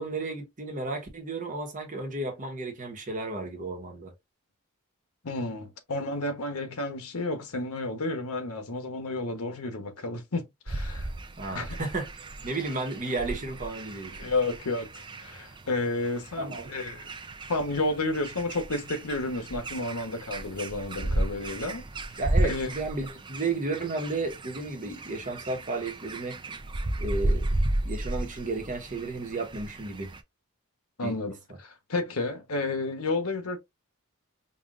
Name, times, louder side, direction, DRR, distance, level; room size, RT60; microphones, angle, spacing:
voice 1, 0.0-4.1 11.4-12.1 12.4-14.3 16.4-16.7 22.2-26.4 27.0-27.5 27.8-30.1 31.0-31.1, right 3 dB, 35° right, 1.1 m, -33 dB
voice 2, 5.2-11.1 11.5-11.8 14.2-17.0 17.5-21.8 22.4-22.7 31.0-33.6, left 2 dB, 80° left, 1.0 m, -31 dB
sound 1, 10.7-30.2, right 1 dB, 20° right, 0.5 m, -34 dB
5.3 x 2.5 x 2.4 m
head